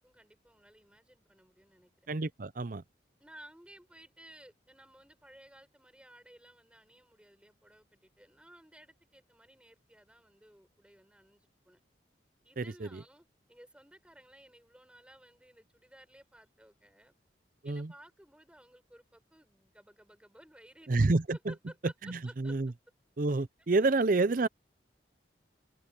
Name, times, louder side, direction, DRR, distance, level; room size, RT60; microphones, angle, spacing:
voice 1, 0.0-2.1 3.2-11.8 12.4-17.1 17.6-22.6, right 1 dB, 5° right, 7.4 m, -57 dB
voice 2, 2.1-2.8 12.6-13.0 17.6-17.9 20.9-21.5 22.0-22.7 23.2-24.5, right 3 dB, 45° right, 0.6 m, -29 dB
open air
head